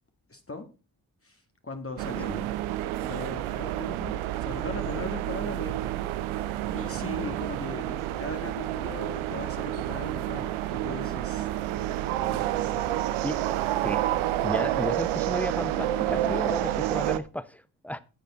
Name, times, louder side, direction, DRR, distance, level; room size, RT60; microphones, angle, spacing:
voice 1, 0.3-0.7 1.2-2.3 3.0-5.8 6.4-6.5 6.7-11.5 12.2-13.3, left 3 dB, 30° left, 1.8 m, -39 dB
sound 1, 2.0-17.2, right 13 dB, 90° right, 0.7 m, -29 dB
voice 2, 14.4-18.0, equal, 5° left, 0.9 m, -33 dB
10.5 x 6.7 x 4.1 m
supercardioid pair, 40°, 47 cm